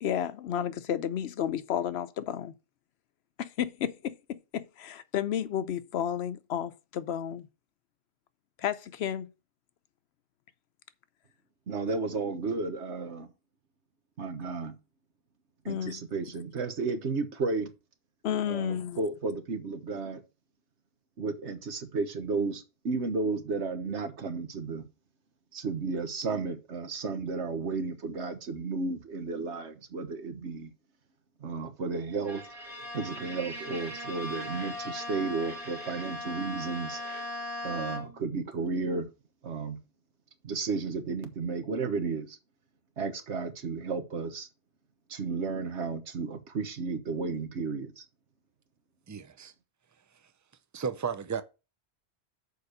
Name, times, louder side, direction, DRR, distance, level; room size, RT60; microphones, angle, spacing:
voice 1, 0.0-2.5 3.4-7.5 8.6-9.3 15.7-16.0 18.2-19.0, left 9 dB, 75° left, 0.9 m, -32 dB
voice 2, 11.7-13.3 14.2-14.8 15.6-17.7 18.5-20.2 21.2-24.9 25.5-30.7 31.4-32.4 32.9-37.0 37.6-39.1 39.4-39.8 40.4-42.4 43.0-44.5 45.1-48.0, right 4 dB, 85° right, 1.5 m, -33 dB
Bowed string instrument, 32.3-38.3, left 1 dB, 50° right, 2.1 m, -38 dB
voice 3, 49.1-49.5 50.7-51.4, right 6 dB, 25° right, 0.4 m, -33 dB
6.7 x 4.7 x 6.6 m
omnidirectional pair, 1.1 m